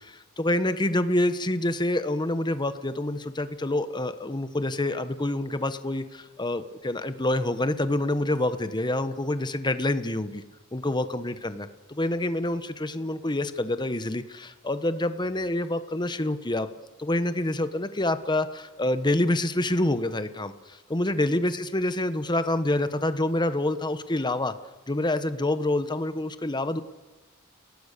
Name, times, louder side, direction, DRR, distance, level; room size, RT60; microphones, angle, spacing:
voice 1, 0.1-10.4 10.7-16.7 17.0-24.5 24.9-26.8, left 1 dB, 20° left, 11 dB, 1.1 m, -27 dB
30.0 x 18.0 x 6.8 m, 1.2 s
head